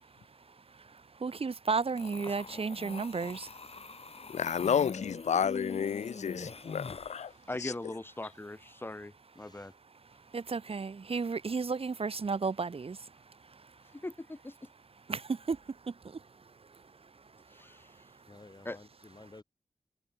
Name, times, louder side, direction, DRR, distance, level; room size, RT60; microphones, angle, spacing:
voice 1, 1.2-3.5 10.3-13.0 15.1-15.2 15.5-15.6, right 4 dB, 55° right, 1.1 m, -32 dB
sound 1, 2.0-7.3, left 4 dB, 55° left, 3.1 m, -43 dB
voice 2, 4.3-7.3 7.6-7.7, left 7 dB, 75° left, 0.4 m, -31 dB
voice 3, 7.5-9.7 13.9-14.7 17.5-18.0 18.6-18.8, left 2 dB, 20° left, 0.7 m, -41 dB
voice 4, 9.4-9.7 18.3-19.4, left 2 dB, 35° left, 7.2 m, -53 dB
wide cardioid pair, 95°, 12 cm